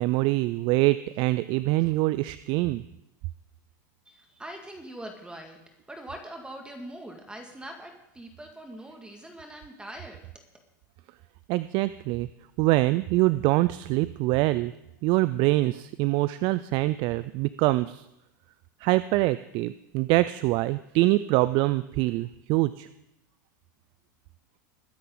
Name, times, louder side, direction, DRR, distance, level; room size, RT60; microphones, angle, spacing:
voice 1, 0.0-2.8 11.5-12.3 12.6-14.7 15.0-18.1 18.8-22.9, right 19 dB, 50° right, 15 dB, 0.5 m, -24 dB
voice 2, 4.1-5.6 5.9-10.2, right 1 dB, 10° right, 3 dB, 2.1 m, -42 dB
21.5 x 9.3 x 3.9 m, 0.83 s
hypercardioid pair, 110°, 10 cm